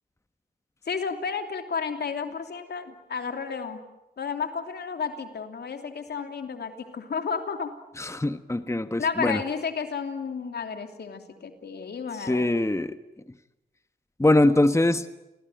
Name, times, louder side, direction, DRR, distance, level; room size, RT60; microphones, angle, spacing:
voice 1, 0.8-3.8 4.2-7.7 9.0-12.5, left 6 dB, 75° left, 6 dB, 3.1 m, -32 dB
voice 2, 8.0-9.4 12.2-13.0 14.2-15.0, left 1 dB, 15° left, 10 dB, 1.4 m, -22 dB
28.5 x 20.0 x 9.2 m, 0.96 s
cardioid pair, 50°, 17 cm